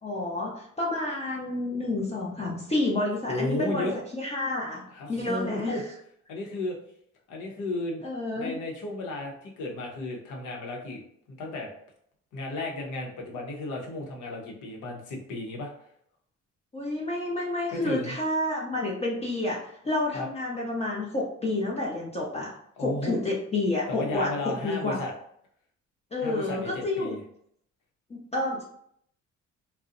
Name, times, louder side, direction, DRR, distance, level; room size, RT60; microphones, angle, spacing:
voice 1, 0.0-4.8 5.1-5.8 8.0-8.5 16.7-25.0 26.1-27.2 28.1-28.6, left 2 dB, 20° left, -3 dB, 0.5 m, -29 dB
voice 2, 3.3-4.0 4.9-5.8 6.3-6.8 7.3-8.0 8.3-11.0 11.4-11.7 12.3-15.7 17.7-18.1 20.1-20.3 22.8-23.2 23.9-25.1 26.2-27.2, left 2 dB, 85° left, 0 dB, 0.7 m, -33 dB
2.5 x 2.0 x 2.5 m, 0.68 s
cardioid pair, 90°, 30 cm